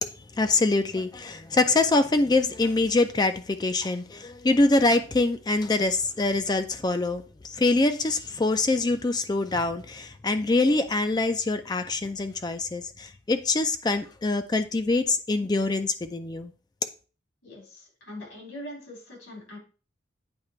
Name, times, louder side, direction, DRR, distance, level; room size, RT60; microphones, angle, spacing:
voice 1, 0.0-16.5, left 2 dB, 20° left, 0.4 m, -24 dB
voice 2, 17.4-19.6, left 1 dB, 90° left, 3.8 m, -42 dB
8.7 x 2.9 x 4.4 m
head